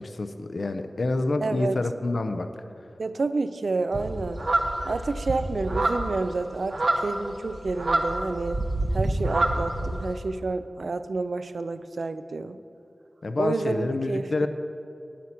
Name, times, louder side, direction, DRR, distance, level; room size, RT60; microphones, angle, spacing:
voice 1, 0.0-2.5 13.2-14.5, left 2 dB, 70° left, 8 dB, 0.5 m, -27 dB
voice 2, 1.4-1.8 3.0-4.4 4.8-8.6 8.9-12.6 13.4-14.5, right 3 dB, 75° right, 11 dB, 0.4 m, -29 dB
sound 1, 3.9-10.1, right 2 dB, 55° right, 0.8 m, -27 dB
10.0 x 8.4 x 4.3 m, 2.6 s
wide cardioid pair, 75°, 0 cm